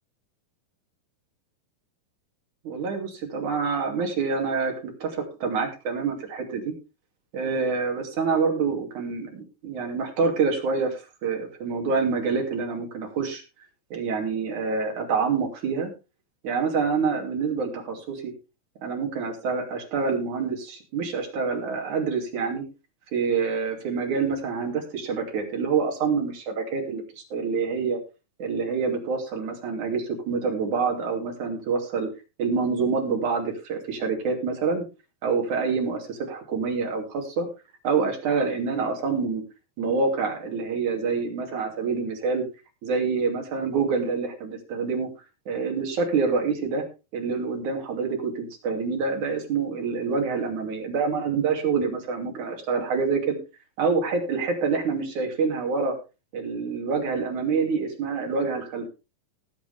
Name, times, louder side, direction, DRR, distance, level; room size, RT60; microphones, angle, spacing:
voice 1, 2.6-6.7 7.3-13.4 13.9-15.9 16.4-18.3 18.8-22.6 23.1-27.0 27.3-28.0 28.4-32.1 32.4-34.8 35.2-37.5 37.8-39.4 39.8-42.4 42.8-45.1 45.5-46.8 47.1-53.4 53.8-55.9 56.3-58.9, right 5 dB, 55° right, 1 dB, 4.1 m, -26 dB
18.5 x 8.2 x 3.5 m, 0.29 s
omnidirectional pair, 4.2 m